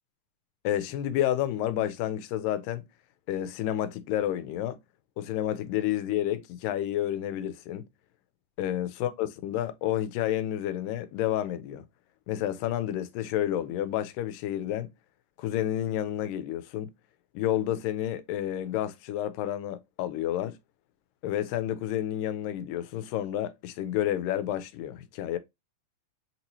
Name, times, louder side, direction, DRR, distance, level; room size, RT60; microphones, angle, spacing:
voice 1, 0.6-2.8 3.3-4.8 5.2-7.9 8.6-11.8 12.3-14.9 15.4-16.9 17.3-20.6 21.2-25.4, left 12 dB, 85° left, 2.2 m, -30 dB
5.9 x 2.9 x 2.7 m
omnidirectional pair, 3.9 m